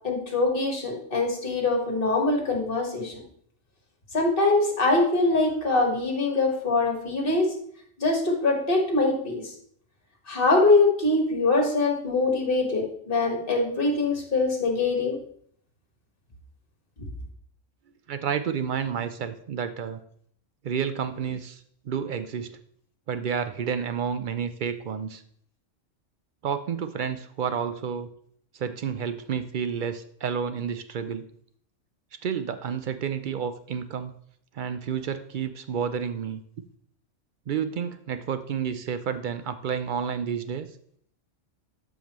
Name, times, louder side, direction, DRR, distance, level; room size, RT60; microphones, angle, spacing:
voice 1, 0.0-3.2 4.1-7.5 8.0-9.5 10.3-15.2, left 3 dB, 45° left, 2 dB, 1.7 m, -23 dB
voice 2, 18.1-20.0 20.6-22.5 23.1-25.2 26.4-28.1 28.5-31.3 32.2-34.1 34.5-36.4 37.5-40.7, right 7 dB, 65° right, 10 dB, 0.5 m, -30 dB
12.5 x 5.1 x 3.0 m, 0.63 s
omnidirectional pair, 1.3 m